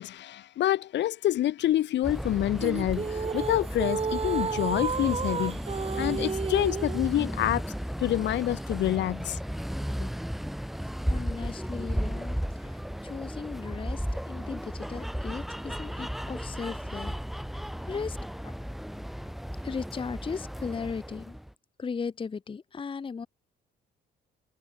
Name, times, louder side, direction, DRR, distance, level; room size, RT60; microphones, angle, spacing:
voice 1, 0.0-5.6 6.0-7.6 8.0-9.4, left 13 dB, 65° left, 0.6 m, -27 dB
sound 1, 2.0-21.5, equal, ahead, 1.0 m, -34 dB
sound 2, 2.6-7.1, right 5 dB, 30° right, 1.0 m, -32 dB
voice 2, 11.1-17.1 17.8-18.5 19.6-21.4 21.8-23.3, left 5 dB, 25° left, 0.7 m, -37 dB
cardioid pair, 90°, 20 cm